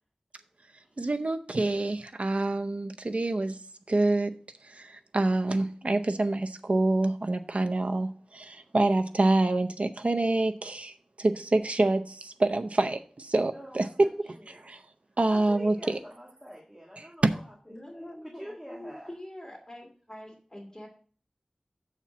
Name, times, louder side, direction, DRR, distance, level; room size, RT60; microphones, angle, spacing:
voice 1, 1.0-3.6 3.9-4.3 4.7-13.9 14.2-14.8 15.2-16.0 17.0-17.3, right 2 dB, 65° right, 0.6 m, -27 dB
voice 2, 13.5-14.1 14.4-14.6 15.3-19.1, equal, 10° right, 1.6 m, -45 dB
voice 3, 17.7-20.9, left 1 dB, 25° left, 2.5 m, -44 dB
6.9 x 4.4 x 6.1 m
wide cardioid pair, 55°, 2 cm